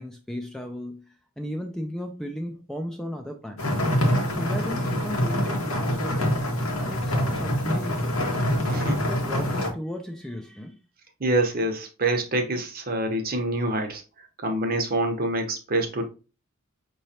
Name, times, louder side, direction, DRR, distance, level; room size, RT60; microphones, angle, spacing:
voice 1, 0.0-3.7 4.4-6.4 6.8-8.2 8.6-10.8, equal, 5° left, 0.4 m, -35 dB
sound 1, 3.6-9.7, left 1 dB, 90° left, 1.3 m, -25 dB
voice 2, 8.7-9.0 11.2-14.0 14.4-16.0, right 1 dB, 45° right, 0.9 m, -26 dB
5.7 x 3.1 x 2.8 m
head